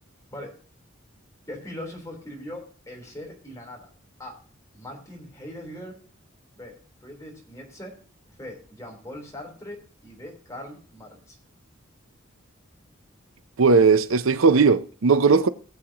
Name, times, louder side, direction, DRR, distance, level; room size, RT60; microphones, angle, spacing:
voice 1, 1.5-3.9 4.2-4.4 4.7-6.0 6.5-6.7 7.0-7.9 8.3-9.8 10.0-11.4, left 1 dB, 15° left, 3.6 m, -40 dB
voice 2, 13.6-15.5, right 4 dB, 85° right, 0.6 m, -18 dB
19.0 x 7.7 x 2.9 m
head